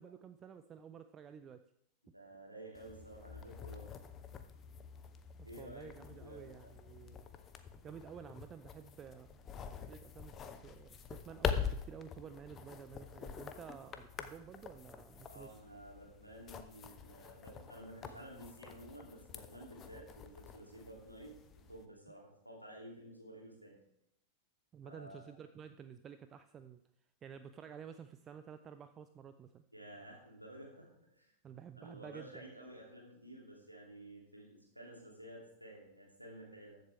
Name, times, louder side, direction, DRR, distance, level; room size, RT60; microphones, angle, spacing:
voice 1, 0.0-1.6 5.6-7.3 7.8-9.4 9.8-15.6 24.7-26.8 27.2-29.6 31.4-32.4, right 7 dB, 25° right, 10 dB, 0.5 m, -52 dB
voice 2, 2.0-3.9 5.4-6.7 15.3-23.8 24.8-25.3 29.7-31.3 31.8-36.8, right 1 dB, 85° right, -2 dB, 2.9 m, -52 dB
sound 1, 2.7-21.9, left 7 dB, 25° left, 0.9 m, -45 dB
14.0 x 7.7 x 3.5 m, 0.76 s
figure-of-eight pair, 90°, 0 cm